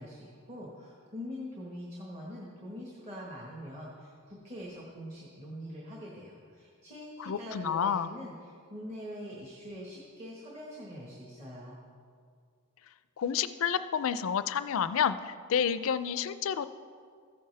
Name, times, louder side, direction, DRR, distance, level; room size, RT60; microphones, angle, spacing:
voice 1, 0.0-11.8, equal, 30° right, -4 dB, 1.4 m, -44 dB
voice 2, 7.2-8.1 13.2-16.7, left 7 dB, 65° left, 13 dB, 0.4 m, -29 dB
14.5 x 9.1 x 3.3 m, 2.2 s
head